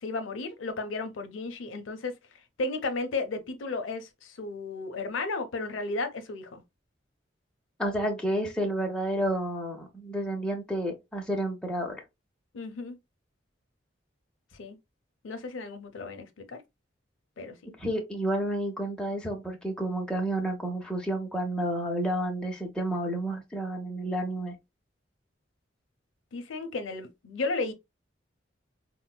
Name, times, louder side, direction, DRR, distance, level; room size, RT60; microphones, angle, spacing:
voice 1, 0.0-2.1 2.6-6.6 12.5-13.0 14.6-14.8 15.2-16.6 17.4-17.5 26.3-27.7, left 3 dB, 85° left, 0.6 m, -34 dB
voice 2, 7.8-12.0 17.8-24.5, right 1 dB, 5° left, 0.6 m, -30 dB
4.5 x 2.1 x 2.2 m
head